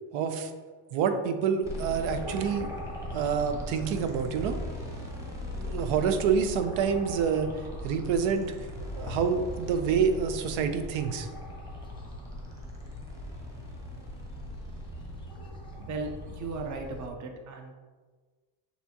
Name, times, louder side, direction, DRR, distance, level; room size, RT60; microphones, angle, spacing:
voice 1, 0.1-0.5 0.9-2.7 3.1-4.6 5.5-7.5 7.8-8.5 9.0-11.3, right 6 dB, 75° right, 8 dB, 0.6 m, -27 dB
sound 1, 1.6-16.5, left 1 dB, 5° right, 0.9 m, -40 dB
sound 2, 2.1-17.1, equal, 10° left, 0.4 m, -43 dB
sound 3, 8.7-12.7, left 4 dB, 70° left, 0.6 m, -46 dB
voice 2, 15.8-16.1 16.4-17.7, right 3 dB, 40° right, 4 dB, 0.7 m, -36 dB
6.7 x 2.8 x 2.8 m, 1.4 s
cardioid pair, 130°, 47 cm